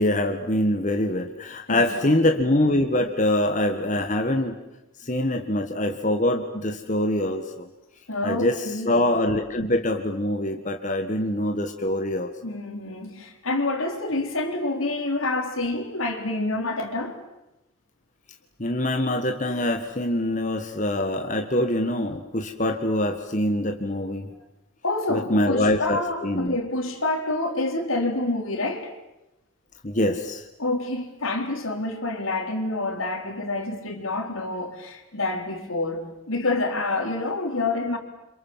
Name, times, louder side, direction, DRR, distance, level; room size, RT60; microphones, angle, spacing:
voice 1, 0.0-4.6 5.0-7.7 8.2-12.3 18.6-24.3 25.1-26.6 29.8-30.5, left 1 dB, 35° left, 1.6 m, -24 dB
voice 2, 1.7-2.1 8.1-9.1 12.4-17.2 24.3-24.4 24.8-29.0 30.6-38.0, left 2 dB, 75° left, 4.1 m, -28 dB
29.0 x 26.5 x 7.5 m
head